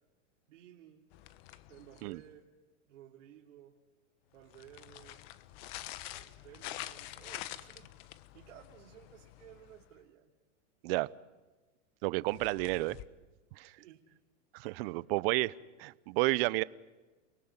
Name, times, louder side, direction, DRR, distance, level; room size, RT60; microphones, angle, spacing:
voice 1, 0.5-1.1 1.7-2.5 2.9-3.7 4.3-5.3 5.8-7.9 8.3-10.3 10.9-11.1 13.7-14.0 14.8-15.3, right 11 dB, 75° right, 0 dB, 3.1 m, -56 dB
sound 1, 1.1-2.3 4.4-10.0 12.3-13.0, left 15 dB, 50° left, 1.3 m, -47 dB
voice 2, 12.0-13.0 13.6-13.7 14.5-15.5 15.8-16.6, right 21 dB, 50° right, 19 dB, 0.9 m, -31 dB
30.0 x 18.5 x 9.8 m, 1.2 s
supercardioid pair, 135°, 37 cm